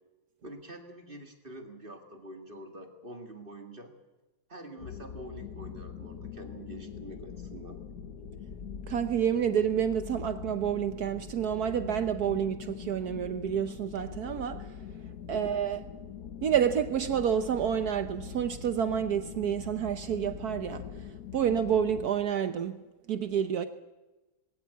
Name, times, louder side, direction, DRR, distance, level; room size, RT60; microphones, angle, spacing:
voice 1, 0.4-3.9 4.5-7.8 15.3-15.5, right 1 dB, 30° right, 2.4 m, -46 dB
sound 1, 4.8-22.1, left 7 dB, 65° left, 1.5 m, -43 dB
voice 2, 8.9-14.7 15.3-15.8 16.4-22.8 23.1-23.7, right 8 dB, 65° right, 1.4 m, -29 dB
20.5 x 17.5 x 8.5 m
omnidirectional pair, 1.8 m